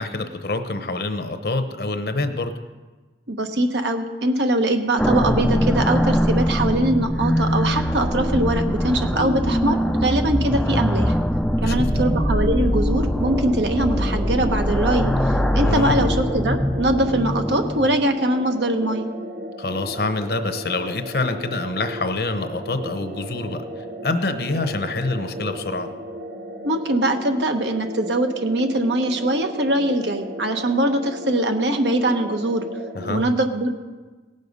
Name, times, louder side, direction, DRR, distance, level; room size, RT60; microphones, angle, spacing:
voice 1, 0.0-2.5 11.6-12.0 15.6-16.1 19.6-23.6 24.0-25.9 32.9-33.3, left 2 dB, 60° left, 8 dB, 0.8 m, -26 dB
voice 2, 3.3-11.2 11.6-15.1 15.5-19.1 26.6-32.6 33.1-33.7, right 1 dB, 80° right, 6 dB, 1.1 m, -22 dB
sound 1, 5.0-18.1, equal, 5° left, 0.4 m, -22 dB
sound 2, 13.2-33.2, equal, 50° right, 1.3 m, -35 dB
18.0 x 6.5 x 5.4 m, 1.3 s
head